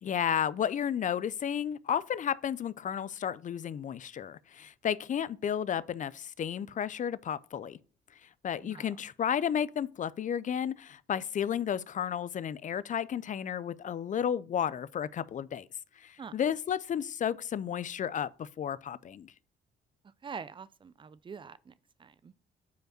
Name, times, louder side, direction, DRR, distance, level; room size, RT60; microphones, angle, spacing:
voice 1, 0.0-7.8 8.2-15.7 16.0-19.3, left 9 dB, 40° left, 0.4 m, -32 dB
voice 2, 20.2-21.7 22.0-22.3, right 6 dB, 25° right, 0.4 m, -44 dB
5.1 x 4.7 x 6.0 m
cardioid pair, 90°, 20 cm